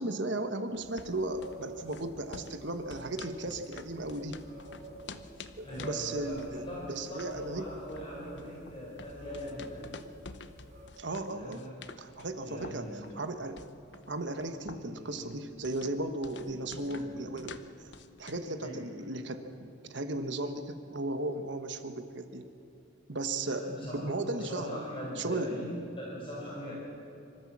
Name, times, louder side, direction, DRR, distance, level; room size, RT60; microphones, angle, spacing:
voice 1, 0.0-4.4 5.6-7.6 11.0-11.7 12.0-13.6 14.1-17.9 18.2-22.4 23.1-24.8 25.2-25.5, right 2 dB, 70° right, 8 dB, 1.3 m, -36 dB
sound 1, 0.7-18.5, left 4 dB, 65° left, 0.9 m, -50 dB
sound 2, 0.8-10.9, right 1 dB, 40° right, 5.9 m, -50 dB
voice 2, 5.6-9.9 11.2-11.8 12.4-13.4 14.7-15.4 16.4-17.3 18.6-19.0 23.4-24.0 24.3-26.7, equal, 30° left, -5 dB, 4.7 m, -42 dB
25.5 x 13.5 x 7.4 m, 2.9 s
head